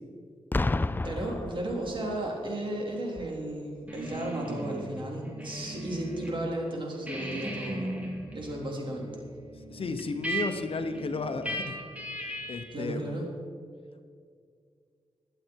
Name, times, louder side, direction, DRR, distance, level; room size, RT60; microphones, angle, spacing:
Boom, 0.5-2.3 3.2-3.4, left 2 dB, 20° left, 0.4 m, -30 dB
voice 1, 1.0-7.9 8.3-9.1 12.7-13.3, right 1 dB, 50° right, -1 dB, 3.4 m, -34 dB
sound 1, 3.9-6.4 6.7-12.8, right 1 dB, 15° right, 2.7 m, -38 dB
voice 2, 9.7-11.8 12.5-13.2, left 3 dB, 60° left, 8 dB, 1.0 m, -33 dB
21.0 x 8.0 x 4.7 m, 2.2 s
wide cardioid pair, 90°, 11 cm